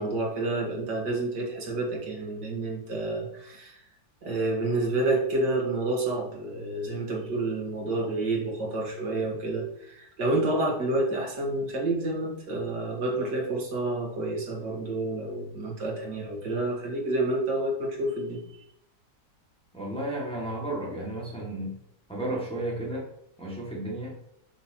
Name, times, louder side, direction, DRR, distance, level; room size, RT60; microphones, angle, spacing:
voice 1, 0.0-3.8 4.2-18.4, right 2 dB, 85° right, -1 dB, 2.4 m, -29 dB
voice 2, 19.7-21.7 22.1-23.0 23.4-24.1, right 1 dB, 5° left, -4 dB, 2.1 m, -33 dB
7.6 x 6.4 x 3.0 m, 0.75 s
omnidirectional pair, 1.8 m